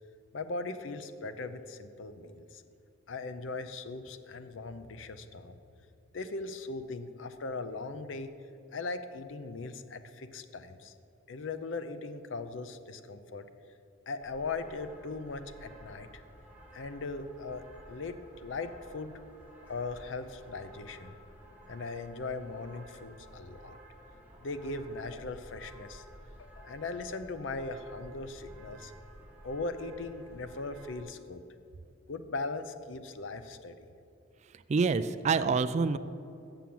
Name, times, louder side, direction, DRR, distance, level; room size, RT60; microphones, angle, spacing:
voice 1, 0.3-2.6 3.1-5.6 6.1-8.3 8.7-10.9 11.3-13.5 14.1-16.2 16.7-19.2 19.7-21.2 21.7-23.8 24.4-26.0 26.4-28.9 29.4-31.4 32.1-33.8, left 3 dB, 75° left, 10 dB, 0.6 m, -39 dB
sound 1, 14.2-31.0, right 1 dB, 10° right, 1.3 m, -53 dB
voice 2, 34.7-36.0, right 4 dB, 35° right, 13 dB, 0.3 m, -26 dB
7.1 x 6.9 x 7.6 m, 2.6 s
head